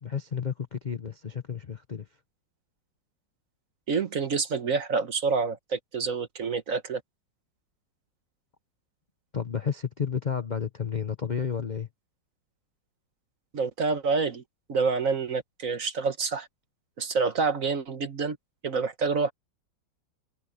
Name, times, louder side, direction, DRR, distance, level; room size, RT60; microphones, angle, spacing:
voice 1, 0.0-2.1 9.3-11.9, left 7 dB, 50° left, 0.5 m, -31 dB
voice 2, 3.9-7.0 13.5-14.4 14.7-16.5 17.0-18.4 18.6-19.3, right 4 dB, 45° right, 1.3 m, -27 dB
omnidirectional pair, 2.2 m